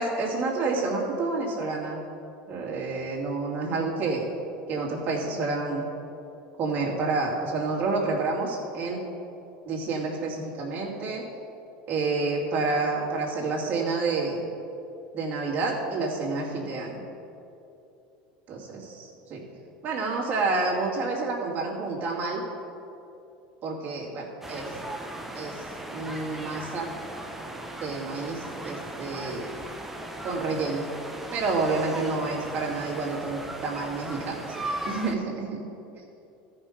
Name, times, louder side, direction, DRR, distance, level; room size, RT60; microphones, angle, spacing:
voice 1, 0.0-2.0 2.5-4.2 4.7-5.9 6.6-9.0 9.7-11.3 11.9-14.4 15.1-17.0 18.5-19.4 19.8-22.4 23.6-24.7 25.3-26.9 27.8-29.5 30.2-30.9 31.3-35.6, right 3 dB, 45° right, -3 dB, 2.4 m, -29 dB
sound 1, 24.4-35.1, right 1 dB, 5° right, 0.9 m, -37 dB
13.5 x 5.5 x 5.2 m, 2.8 s
supercardioid pair, 110°, 4 cm